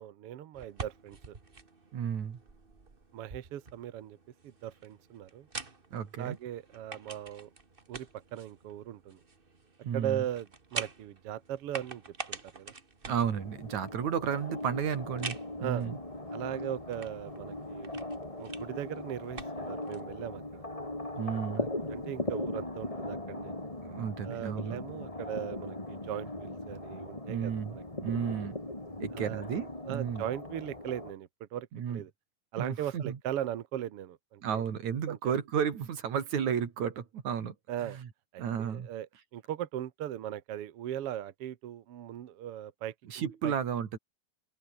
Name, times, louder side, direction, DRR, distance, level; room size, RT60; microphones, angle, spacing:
voice 1, 0.0-1.4 3.1-4.2 4.4-5.5 6.2-7.5 7.9-9.2 9.9-12.0 12.3-12.7 15.6-15.9 16.3-17.9 18.4-20.7 21.5-23.5 24.2-27.8 29.1-29.4 29.9-32.1 32.5-34.7 35.1-35.3 37.7-38.0 38.3-43.5, right 11 dB, 60° right, 1.9 m, -39 dB
sound 1, 0.5-20.1, right 3 dB, 20° right, 1.8 m, -47 dB
voice 2, 1.9-2.4 5.9-6.4 9.8-10.2 13.1-16.0 21.2-21.7 23.8-24.8 27.3-28.6 29.0-30.2 31.7-32.0 32.6-33.2 34.4-37.6 37.8-38.1 38.4-38.9 43.1-44.0, right 8 dB, 80° right, 3.8 m, -33 dB
sound 2, 13.1-31.1, left 1 dB, 10° left, 3.3 m, -39 dB
open air
omnidirectional pair, 3.3 m